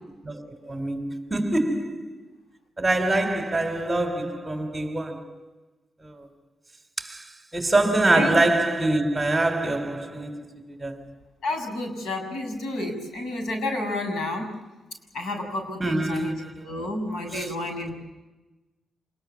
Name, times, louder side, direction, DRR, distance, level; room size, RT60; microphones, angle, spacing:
voice 1, 0.2-2.3 2.8-5.4 6.0-6.3 7.0-11.1 15.8-16.7 17.3-17.5, right 2 dB, 10° right, 3.4 m, -25 dB
voice 2, 11.4-14.5 15.1-16.3 16.6-17.9, left 1 dB, 90° left, 6.5 m, -30 dB
27.0 x 21.0 x 7.0 m
cardioid pair, 120°, 0 cm